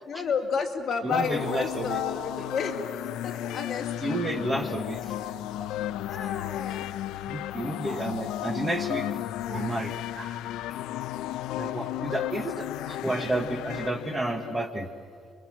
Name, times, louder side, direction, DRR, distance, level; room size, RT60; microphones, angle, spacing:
voice 1, 0.1-4.2 6.1-6.9, left 5 dB, 40° left, 3 dB, 2.6 m, -31 dB
voice 2, 1.0-2.0 2.4-2.5 3.4-5.7 7.3-9.1 9.5-10.4 11.6-14.9, right 2 dB, 15° right, 7 dB, 1.3 m, -32 dB
sound 1, 1.1-14.6, left 13 dB, 85° left, 0.6 m, -34 dB
30.0 x 23.0 x 7.5 m, 2.2 s
cardioid pair, 150°, 0 cm